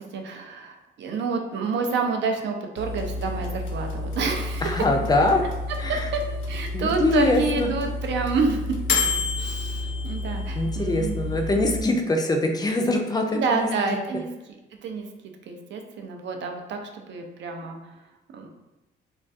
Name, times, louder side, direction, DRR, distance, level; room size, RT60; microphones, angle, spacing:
voice 1, 0.0-4.8 5.9-6.2 6.5-8.7 9.4-11.2 13.3-14.3 14.8-15.1 15.5-17.8 18.3-18.5, right 4 dB, 65° right, 3 dB, 0.4 m, -28 dB
sound 1, 2.8-11.8, left 3 dB, 75° left, 0.5 m, -30 dB
voice 2, 4.6-5.4 5.8-6.1 6.7-7.7 10.6-13.7, left 2 dB, 20° left, 3 dB, 0.3 m, -23 dB
2.2 x 2.2 x 2.6 m, 1.0 s
cardioid pair, 90°, 20 cm